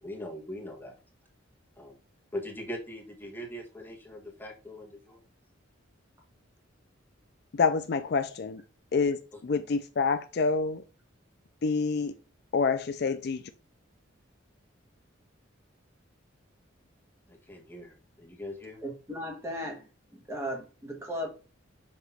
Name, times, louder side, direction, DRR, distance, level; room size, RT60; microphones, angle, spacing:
voice 1, 0.0-0.9 1.8-2.0 2.3-5.2 17.3-18.8, left 1 dB, 10° left, 1.4 m, -41 dB
voice 2, 7.5-8.6 8.9-10.8 11.6-12.1 12.5-13.4, left 4 dB, 50° left, 0.4 m, -27 dB
voice 3, 18.8-19.8 20.1-21.3, equal, 15° right, 1.4 m, -36 dB
6.0 x 3.0 x 5.6 m
head